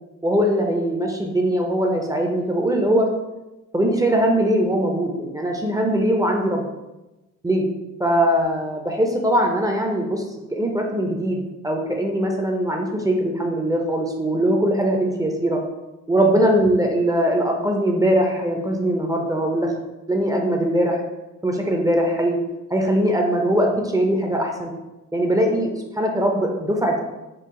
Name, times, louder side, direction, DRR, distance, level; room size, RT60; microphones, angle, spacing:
voice 1, 0.2-3.1 3.7-6.6 7.4-7.6 8.0-10.2 10.5-15.6 16.1-19.7 20.1-21.0 21.4-22.4 22.7-24.7 25.1-27.0, right 1 dB, 10° right, 1 dB, 0.6 m, -21 dB
4.5 x 2.3 x 3.7 m, 1.0 s
cardioid pair, 95°, 30 cm